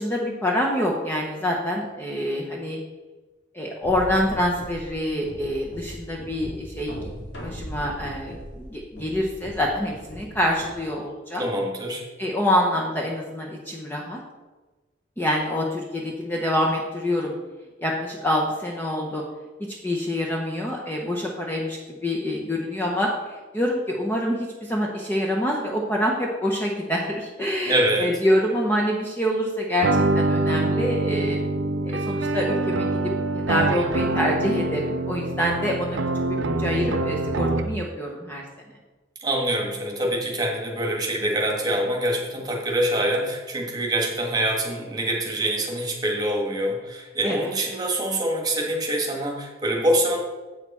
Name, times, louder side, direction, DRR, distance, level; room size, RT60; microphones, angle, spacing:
voice 1, 0.0-2.8 3.5-7.0 7.4-11.4 12.2-14.2 15.2-17.3 17.8-19.2 19.8-29.9 30.1-31.4 31.8-36.0 36.3-38.4 47.2-47.4, equal, 10° left, -2 dB, 0.7 m, -26 dB
sound 1, 3.8-10.8, equal, 60° left, 2.1 m, -39 dB
voice 2, 11.4-12.0 27.7-28.1 39.2-50.2, right 1 dB, 20° right, 0 dB, 1.5 m, -25 dB
sound 2, 29.8-37.8, right 2 dB, 65° right, 0.5 m, -25 dB
8.1 x 6.6 x 4.2 m, 1.2 s
head